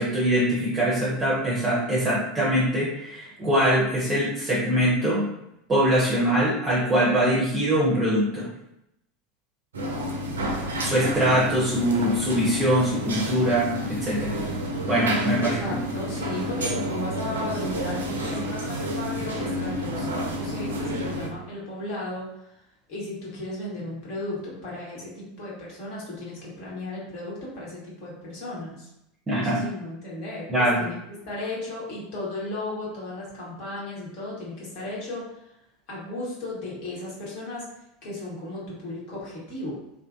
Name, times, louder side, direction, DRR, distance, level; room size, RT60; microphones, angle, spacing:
voice 1, 0.0-5.3 5.7-8.5 10.8-14.4 14.9-15.6 29.3-29.6 30.5-30.8, equal, 20° right, -6 dB, 0.7 m, -23 dB
sound 1, 9.7-21.3, equal, 70° right, 0.5 m, -30 dB
voice 2, 15.3-22.6 22.9-28.9 29.3-31.0 31.3-35.5 35.9-37.6 38.0-39.8, left 2 dB, 50° left, -5 dB, 1.2 m, -35 dB
2.5 x 2.4 x 2.4 m, 0.82 s
figure-of-eight pair, 80°, 0 cm